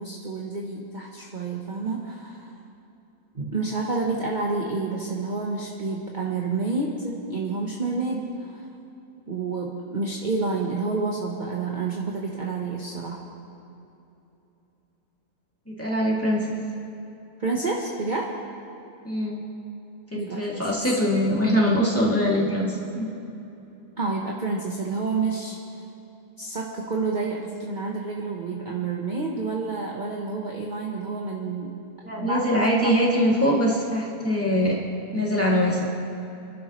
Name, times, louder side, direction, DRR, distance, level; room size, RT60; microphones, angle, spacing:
voice 1, 0.0-2.6 3.3-8.7 9.3-13.2 17.4-18.3 20.1-20.7 24.0-25.6 26.4-31.8 32.2-32.5 32.8-32.9 33.5-33.6, right 3 dB, 35° right, -2 dB, 1.1 m, -29 dB
voice 2, 15.7-16.6 19.0-19.4 20.1-23.1 32.0-34.8 35.1-35.8, equal, 10° left, -6 dB, 2.5 m, -23 dB
27.5 x 11.5 x 3.2 m, 2.9 s
omnidirectional pair, 1.6 m